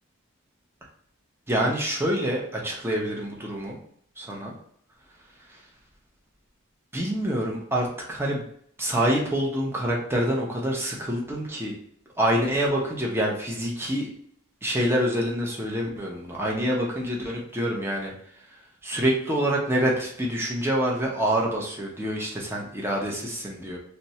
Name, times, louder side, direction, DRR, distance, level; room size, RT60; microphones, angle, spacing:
voice 1, 1.5-3.8 4.2-4.5 6.9-8.4 8.8-11.7 12.2-14.1 14.6-18.1 18.8-23.8, equal, 10° right, -2 dB, 0.6 m, -26 dB
2.7 x 2.2 x 4.0 m, 0.64 s
head